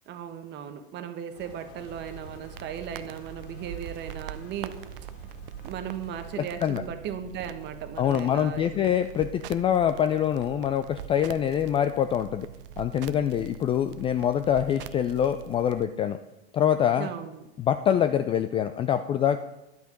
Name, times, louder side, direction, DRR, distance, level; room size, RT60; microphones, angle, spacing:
voice 1, 0.1-4.8 5.0-5.1 5.6-8.9 17.0-17.5, right 9 dB, 35° right, 8 dB, 1.2 m, -37 dB
sound 1, 1.3-6.5, left 4 dB, 50° left, 2.6 m, -50 dB
sound 2, 1.8-15.8, right 9 dB, 60° right, 0.6 m, -43 dB
voice 2, 6.4-6.8 8.0-12.5 12.8-16.2 16.5-17.1 17.6-19.4, left 9 dB, 20° left, 10 dB, 0.3 m, -25 dB
10.5 x 8.3 x 5.2 m, 0.94 s
hypercardioid pair, 95°, 31 cm